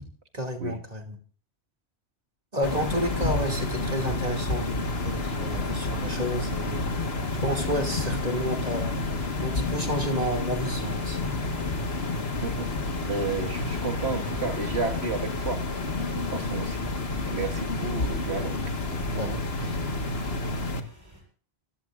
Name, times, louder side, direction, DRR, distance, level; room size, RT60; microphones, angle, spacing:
voice 1, 0.3-1.2 2.5-6.9 7.4-8.9 9.4-11.2 19.1-19.9, equal, 35° right, 2.7 m, -31 dB
sound 1, 2.6-20.8, left 2 dB, 60° left, 2.0 m, -30 dB
sound 2, 11.0-21.2, equal, 15° right, 7.9 m, -48 dB
voice 2, 13.0-15.7 16.0-16.9 17.2-18.6 18.9-19.0, right 4 dB, 65° right, 2.2 m, -32 dB
27.0 x 17.0 x 2.6 m
omnidirectional pair, 1.2 m